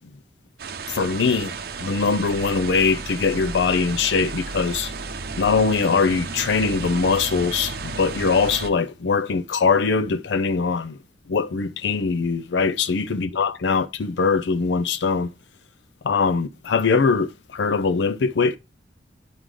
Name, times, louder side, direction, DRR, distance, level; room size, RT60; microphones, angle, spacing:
sound 1, 0.6-8.7, right 4 dB, 60° right, 0.8 m, -33 dB
voice 1, 0.9-1.5 1.8-4.9 5.4-11.0 11.3-15.3 16.0-18.6, left 4 dB, 90° left, 0.5 m, -22 dB
9.4 x 3.8 x 4.7 m
head